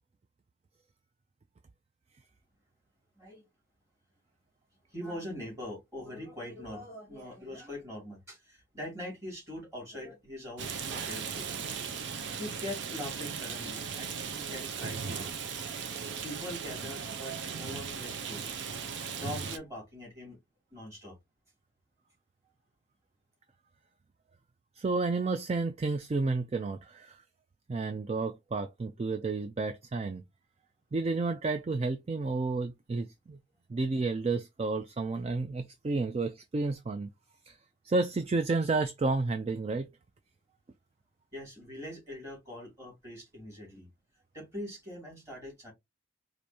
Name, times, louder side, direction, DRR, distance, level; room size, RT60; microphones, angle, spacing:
voice 1, 4.9-11.6 12.4-15.4 16.2-18.5 19.2-20.4 20.7-21.2 41.3-43.9 44.3-45.7, left 1 dB, 15° right, 2.7 m, -42 dB
Rain, 10.6-19.6, right 6 dB, 70° right, 0.6 m, -37 dB
voice 2, 24.8-27.2 27.7-30.2 30.9-33.4 33.7-37.1 37.5-37.6 37.8-39.9, right 3 dB, 30° right, 0.3 m, -31 dB
4.8 x 2.6 x 2.7 m
head